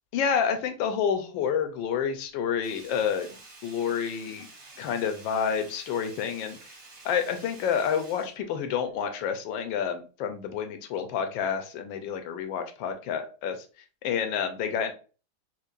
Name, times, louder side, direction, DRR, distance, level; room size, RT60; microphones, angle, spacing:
voice 1, 0.1-3.3 3.6-4.5 4.8-6.6 7.0-13.6 14.0-14.9, left 7 dB, 80° left, 7 dB, 1.3 m, -29 dB
Sink (filling or washing), 2.6-9.1 9.5-9.6, right 3 dB, 40° right, 1.0 m, -50 dB
4.5 x 2.5 x 2.4 m, 0.36 s
omnidirectional pair, 2.1 m